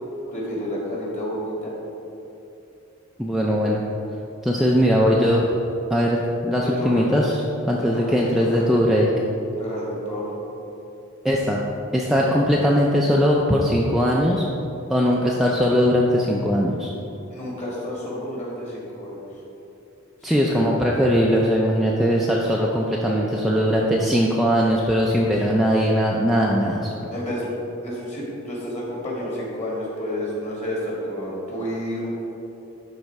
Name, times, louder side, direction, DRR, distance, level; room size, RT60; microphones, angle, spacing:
voice 1, 0.3-1.7 6.6-7.0 7.8-8.6 9.5-10.3 17.3-19.2 20.2-20.9 25.2-25.6 27.1-27.4 27.8-32.1, equal, 30° left, -5 dB, 2.0 m, -30 dB
voice 2, 3.2-3.8 4.4-5.5 5.9-9.1 11.2-11.6 11.9-14.5 14.9-16.9 20.2-27.1, equal, ahead, -4 dB, 0.4 m, -20 dB
11.5 x 4.1 x 4.7 m, 2.9 s
head